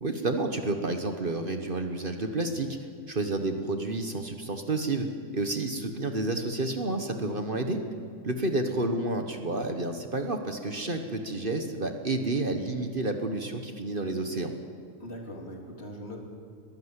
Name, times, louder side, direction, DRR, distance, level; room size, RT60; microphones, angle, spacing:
voice 1, 0.0-2.7 3.1-5.1 5.3-7.8 8.2-14.5, right 2 dB, 45° right, 6 dB, 1.4 m, -30 dB
voice 2, 15.0-16.3, left 1 dB, 50° left, 1 dB, 3.3 m, -41 dB
21.0 x 15.5 x 8.2 m, 2.4 s
omnidirectional pair, 1.4 m